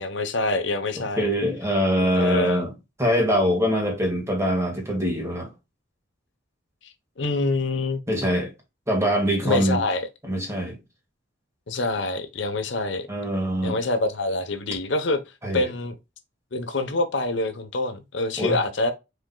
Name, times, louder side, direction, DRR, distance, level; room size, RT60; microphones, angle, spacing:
voice 1, 0.0-1.3 2.0-2.7 6.8-8.0 9.4-10.1 11.7-13.1 13.6-15.2 15.5-16.0 16.5-18.9, left 2 dB, 65° left, 0.9 m, -26 dB
voice 2, 0.9-2.7 3.0-5.5 8.1-8.5 8.9-9.8 10.2-10.8 13.1-13.8 15.4-15.7 18.4-18.6, equal, 15° right, 1.8 m, -23 dB
5.1 x 4.4 x 2.3 m
head